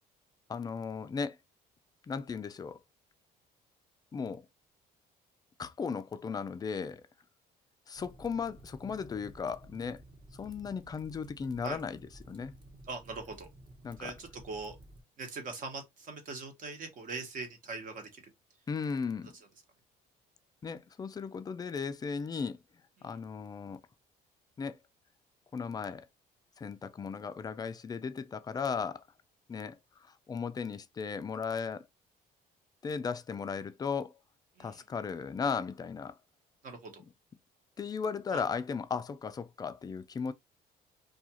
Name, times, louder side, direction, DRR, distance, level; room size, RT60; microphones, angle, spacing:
voice 1, 0.5-1.4 2.1-2.8 4.1-4.4 5.6-7.0 7.9-10.0 10.3-12.0 12.3-12.5 13.8-14.1 18.7-19.3 20.6-22.6 23.0-23.8 24.6-24.8 25.5-26.1 26.6-29.0 29.5-29.8 30.3-31.8 32.8-34.1 34.6-36.2 37.8-40.3, left 5 dB, 25° left, 0.3 m, -36 dB
Fire, 7.9-15.0, right 1 dB, 25° right, 0.9 m, -54 dB
voice 2, 12.8-13.5 14.0-14.8 15.2-18.3 23.0-23.2 34.6-34.9 36.6-37.0 38.3-38.4, right 3 dB, 50° right, 1.0 m, -41 dB
2.4 x 2.3 x 2.8 m
cardioid pair, 110°, 17 cm